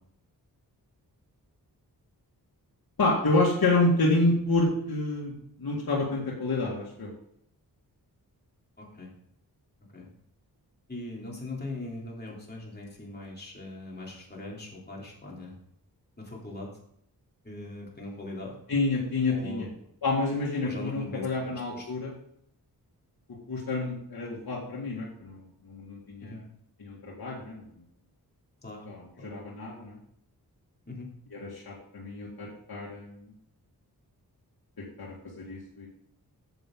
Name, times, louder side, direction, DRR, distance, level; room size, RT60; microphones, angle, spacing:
voice 1, 3.0-5.3 5.6-7.1 18.7-19.7 20.0-22.1 23.5-26.4 26.8-27.6 28.9-30.0 31.3-33.2 35.0-35.9, left 2 dB, 65° left, -4 dB, 2.2 m, -28 dB
voice 2, 8.8-9.1 9.9-10.1 10.9-15.6 16.2-16.7 17.4-18.6 19.3-19.7 20.6-21.9 26.2-26.4 28.6-28.9 29.2-29.3 30.9-31.1, left 2 dB, 25° left, -3 dB, 3.4 m, -40 dB
10.5 x 7.5 x 3.8 m, 0.72 s
wide cardioid pair, 85°, 38 cm